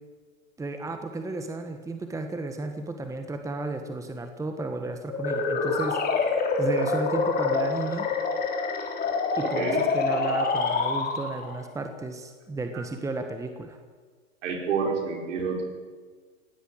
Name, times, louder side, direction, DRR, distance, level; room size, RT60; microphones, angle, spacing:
voice 1, 0.6-6.0 6.6-8.1 9.4-13.8, right 2 dB, 10° right, 6 dB, 1.5 m, -33 dB
sound 1, 5.1-11.6, left 4 dB, 25° left, 3.8 m, -26 dB
voice 2, 14.4-15.6, right 5 dB, 65° right, 1 dB, 5.3 m, -28 dB
21.0 x 17.0 x 8.1 m, 1.5 s
hypercardioid pair, 115°, 40 cm